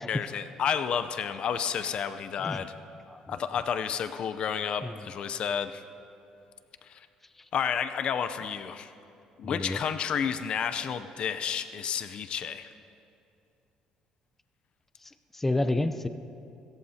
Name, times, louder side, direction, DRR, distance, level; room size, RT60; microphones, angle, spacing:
voice 1, 0.1-2.7 3.3-5.8 6.8-7.1 7.5-8.9 9.4-12.7, left 7 dB, 55° left, 11 dB, 0.6 m, -31 dB
voice 2, 9.4-9.8 15.3-16.1, left 2 dB, 10° left, 8 dB, 0.6 m, -29 dB
25.5 x 14.5 x 2.9 m, 2.6 s
cardioid pair, 100°, 2 cm